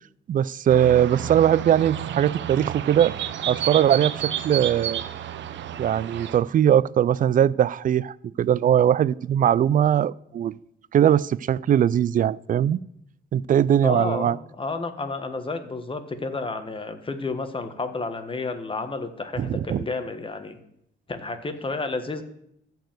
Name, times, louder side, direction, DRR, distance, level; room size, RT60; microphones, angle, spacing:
voice 1, 0.3-3.1 3.5-4.1 4.4-5.0 5.8-10.6 10.9-12.8 13.3-14.4 19.4-19.8, right 10 dB, 45° right, 22 dB, 0.4 m, -20 dB
sound 1, 0.7-6.4, right 10 dB, 65° right, 0.8 m, -31 dB
voice 2, 13.8-20.6 21.1-22.2, left 3 dB, 25° left, 8 dB, 1.4 m, -31 dB
14.0 x 4.7 x 7.8 m, 0.76 s
cardioid pair, 90°, 20 cm